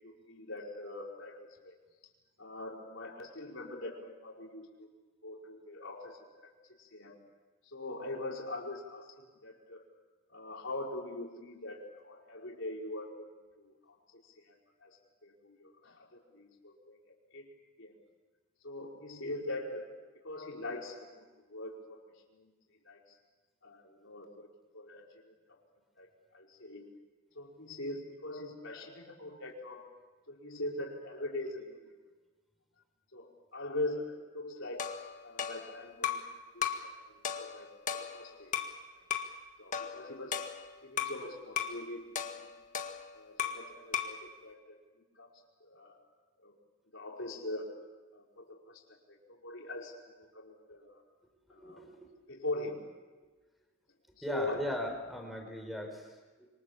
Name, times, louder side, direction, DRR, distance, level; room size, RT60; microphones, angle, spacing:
voice 1, 0.0-1.8 2.4-4.9 5.2-6.5 6.8-7.2 7.6-9.8 10.3-14.5 14.8-17.0 17.3-17.5 17.8-17.9 18.6-19.9 20.2-21.2 21.5-22.0 22.3-22.5 22.8-23.2 23.6-24.5 24.7-25.6 26.0-26.9 27.3-29.9 30.3-31.9 33.1-34.9 35.2-36.3 36.5-38.5 39.6-40.4 40.8-42.1 42.4-42.6 43.1-45.3 45.6-46.0 46.4-46.5 46.9-47.8 48.1-51.0 51.5-51.8 52.3-52.9 54.2-54.7, left 2 dB, 65° left, -1 dB, 4.9 m, -42 dB
sound 1, 34.8-36.3 36.6-36.9 37.2-38.8 39.1-39.3 39.7-41.2 41.6-41.8 42.1-43.7 43.9-44.2, left 8 dB, 40° left, 1.8 m, -36 dB
voice 2, 51.6-52.0 54.2-56.5, equal, ahead, 3 dB, 4.7 m, -38 dB
27.0 x 24.5 x 7.3 m, 1.3 s
head